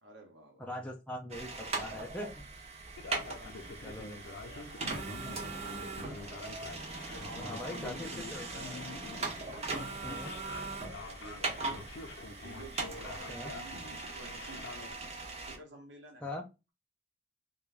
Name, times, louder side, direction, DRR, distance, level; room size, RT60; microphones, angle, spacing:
voice 1, 0.0-0.7 3.0-6.3 7.1-8.2 8.5-8.9 11.0-11.9 12.4-14.7 15.4-16.4, right 1 dB, 85° right, 0.7 m, -52 dB
voice 2, 0.6-2.4 3.8-4.2 7.4-8.5 10.0-10.3 13.3-13.5 16.2-16.4, left 1 dB, 5° left, 0.3 m, -41 dB
sound 1, 1.3-15.6, right 3 dB, 35° right, 0.6 m, -40 dB
Male speech man speaking, 3.0-14.9, left 4 dB, 85° left, 0.5 m, -47 dB
2.4 x 2.2 x 3.2 m
head